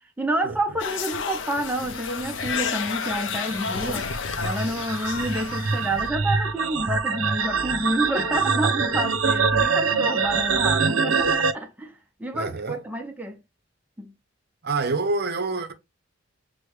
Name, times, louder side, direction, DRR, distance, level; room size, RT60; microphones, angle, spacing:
voice 1, 0.2-13.4 14.0-14.1, right 1 dB, 10° right, 0.4 m, -29 dB
sound 1, 0.8-6.1, left 6 dB, 65° left, 0.4 m, -31 dB
sound 2, 2.2-11.5, right 5 dB, 85° right, 0.6 m, -24 dB
voice 2, 12.3-12.8 14.6-15.7, right 3 dB, 50° right, 0.7 m, -27 dB
6.2 x 2.1 x 3.1 m
head